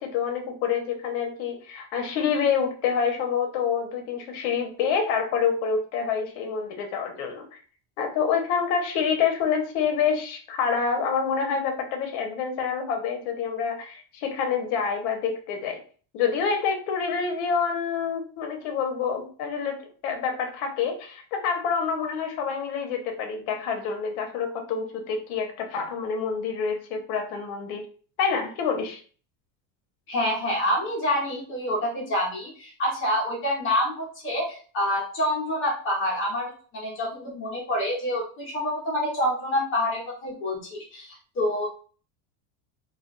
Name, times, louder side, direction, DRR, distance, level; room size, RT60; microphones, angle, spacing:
voice 1, 0.0-7.5 8.0-15.8 16.1-27.8 28.2-29.0, left 6 dB, 55° left, 3 dB, 0.8 m, -27 dB
voice 2, 30.1-41.7, left 1 dB, 30° left, -2 dB, 0.7 m, -27 dB
2.3 x 2.2 x 3.7 m, 0.41 s
cardioid pair, 175°, 42 cm